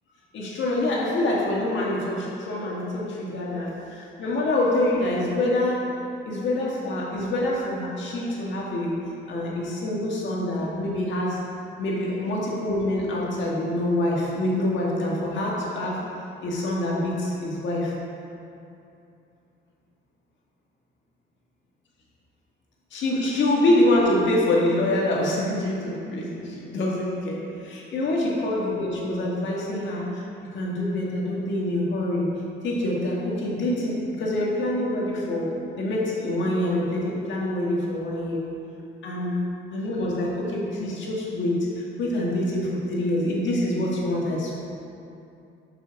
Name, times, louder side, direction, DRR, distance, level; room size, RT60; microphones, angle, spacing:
voice 1, 0.3-3.7 4.2-5.8 6.2-9.0 9.3-11.4 11.8-16.0 16.4-17.9 22.9-30.2 30.5-32.3 32.6-38.4 39.0-39.4 39.7-41.7 42.0-44.5, left 1 dB, 70° left, -4 dB, 1.8 m, -25 dB
6.6 x 6.0 x 4.7 m, 2.7 s
cardioid pair, 90°, 20 cm